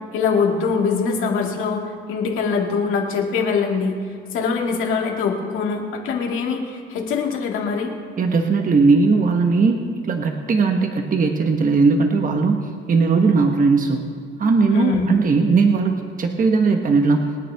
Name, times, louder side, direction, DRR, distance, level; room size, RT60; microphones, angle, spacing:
voice 1, 0.1-4.0 4.3-7.9 14.7-15.2, left 5 dB, 90° left, 0 dB, 2.2 m, -23 dB
voice 2, 8.2-9.8 10.0-14.0 14.4-17.3, right 4 dB, 45° right, 4 dB, 1.2 m, -18 dB
27.5 x 9.2 x 3.5 m, 2.2 s
cardioid pair, 90°, 20 cm